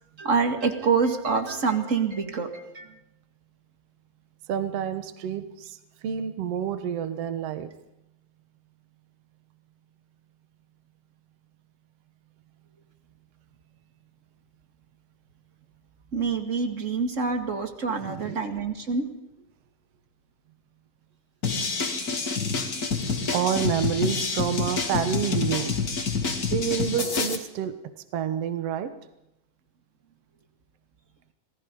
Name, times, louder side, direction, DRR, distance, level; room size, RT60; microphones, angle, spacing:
voice 1, 0.2-3.0 16.1-19.1, right 5 dB, 30° right, 6 dB, 2.0 m, -26 dB
voice 2, 4.5-7.7 18.0-18.5 23.3-25.7 26.5-27.7 28.1-28.9, right 8 dB, 60° right, 10 dB, 2.2 m, -28 dB
sound 1, 21.4-27.3, left 4 dB, 35° left, 2.1 m, -27 dB
27.0 x 19.5 x 5.4 m, 0.89 s
omnidirectional pair, 3.3 m